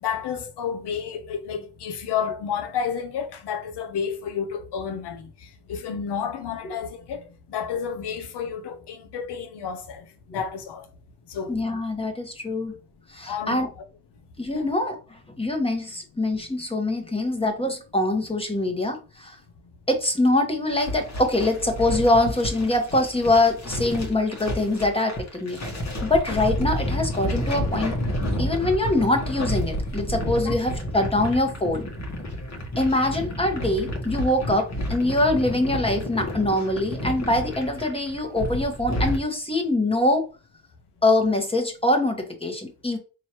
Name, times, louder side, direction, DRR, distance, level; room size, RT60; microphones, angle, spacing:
voice 1, 0.0-5.3 5.7-7.2 7.5-10.9 11.3-11.6 13.3-13.8 14.5-14.6 30.4-30.5, left 7 dB, 80° left, 0.8 m, -31 dB
voice 2, 11.5-12.7 13.1-13.7 14.4-19.4 19.9-25.6 26.0-28.0 28.4-31.9 32.8-40.2 41.0-43.0, left 2 dB, 15° left, 1.2 m, -24 dB
sound 1, 20.7-39.2, equal, 40° left, 1.4 m, -30 dB
4.7 x 3.0 x 2.9 m
cardioid pair, 70°, 40 cm